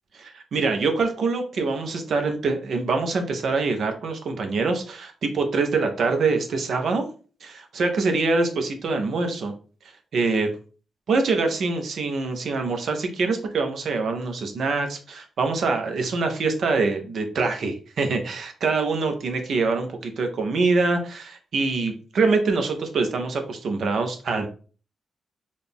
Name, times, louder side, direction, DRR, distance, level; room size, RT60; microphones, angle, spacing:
voice 1, 0.1-7.1 7.4-9.5 10.1-10.5 11.1-24.5, right 3 dB, 70° right, 5 dB, 0.8 m, -24 dB
4.0 x 2.4 x 3.5 m, 0.39 s
supercardioid pair, 50°, 0 cm